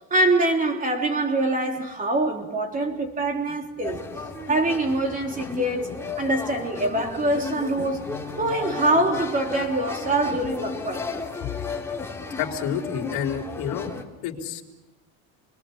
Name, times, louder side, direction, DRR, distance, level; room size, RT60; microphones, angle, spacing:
voice 1, 0.1-4.0 4.5-8.0 8.4-11.1, right 2 dB, 20° right, 3.4 m, -24 dB
sound 1, 3.8-14.0, left 4 dB, 5° left, 2.5 m, -34 dB
voice 2, 12.4-13.9 14.2-14.6, left 8 dB, 70° left, 3.7 m, -29 dB
29.0 x 21.5 x 7.2 m
cardioid pair, 155°, 40 cm